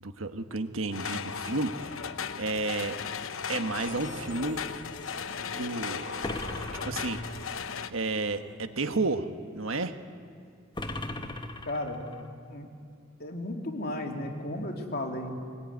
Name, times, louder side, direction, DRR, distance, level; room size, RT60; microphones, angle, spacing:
voice 1, 0.0-2.1 2.4-3.0 3.5-4.6 5.5-6.1 6.8-7.2 7.9-9.3 9.5-10.0, right 3 dB, 85° right, 8 dB, 1.4 m, -31 dB
sound 1, 0.9-7.9, left 6 dB, 75° left, 0.9 m, -37 dB
sound 2, 3.5-8.5, right 2 dB, 45° right, 4.3 m, -47 dB
sound 3, 6.2-7.7 10.8-12.3, left 2 dB, 25° left, 1.3 m, -37 dB
voice 2, 11.6-12.1 12.5-12.7 13.2-15.3, left 1 dB, 50° left, 2 dB, 3.1 m, -34 dB
22.5 x 19.5 x 9.5 m, 2.3 s
head